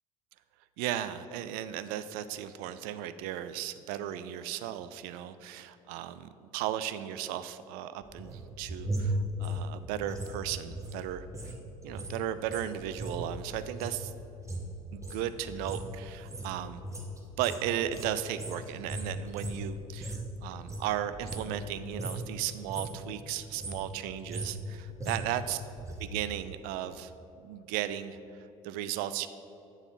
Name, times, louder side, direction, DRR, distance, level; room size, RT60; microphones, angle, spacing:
voice 1, 0.8-11.5 11.8-14.1 14.9-16.8 17.4-25.6 26.0-27.1 27.4-29.3, right 11 dB, 55° right, 13 dB, 0.4 m, -36 dB
sound 1, 8.0-11.6 11.8-20.3 20.6-21.7 21.9-22.3 22.6-23.0 23.4-26.1 26.3-26.4, right 1 dB, 15° right, 1.2 m, -37 dB
9.5 x 4.0 x 6.0 m, 2.8 s
figure-of-eight pair, 60°, 19 cm